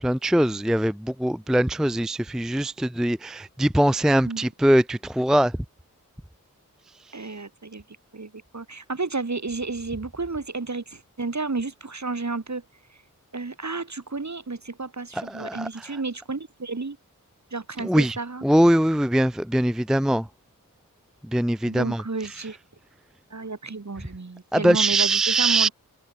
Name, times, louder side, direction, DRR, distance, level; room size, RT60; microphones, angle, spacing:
voice 1, 0.0-5.6 15.1-15.9 17.8-18.2 18.4-20.3 21.2-22.0 24.5-25.7, right 1 dB, ahead, 0.5 m, -22 dB
voice 2, 7.1-7.8 8.1-12.6 13.3-17.0 17.5-18.4 21.7-22.6 23.3-25.7, right 3 dB, 55° right, 6.8 m, -32 dB
wide cardioid pair, 70°, 34 cm